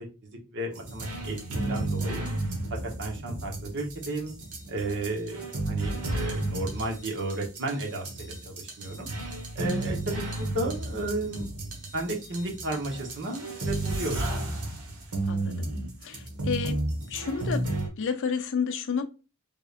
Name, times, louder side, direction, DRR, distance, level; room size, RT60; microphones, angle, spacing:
voice 1, 0.2-2.3 2.7-4.3 4.7-9.1 9.5-11.5 11.9-14.2, right 2 dB, 55° right, 1.1 m, -33 dB
sound 1, 0.7-17.9, right 2 dB, 80° right, 1.2 m, -33 dB
voice 2, 15.3-15.7 16.0-16.8 17.1-17.7 18.0-19.0, left 6 dB, 60° left, 0.5 m, -30 dB
3.5 x 3.3 x 2.5 m
head